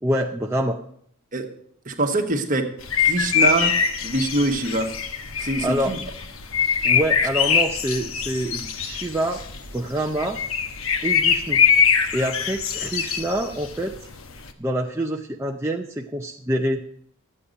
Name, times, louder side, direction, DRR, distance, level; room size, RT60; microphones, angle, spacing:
voice 1, 0.0-0.8 5.4-6.0 6.8-9.4 9.7-10.4 11.0-11.6 12.1-13.9 14.6-16.8, right 1 dB, 10° right, 1 dB, 0.5 m, -26 dB
voice 2, 1.8-2.7 3.0-3.8 4.0-4.9 5.4-6.0, right 2 dB, 40° right, 5 dB, 1.2 m, -24 dB
sound 1, 2.8-14.5, left 7 dB, 75° left, 1.0 m, -23 dB
12.5 x 8.6 x 5.2 m, 0.66 s
head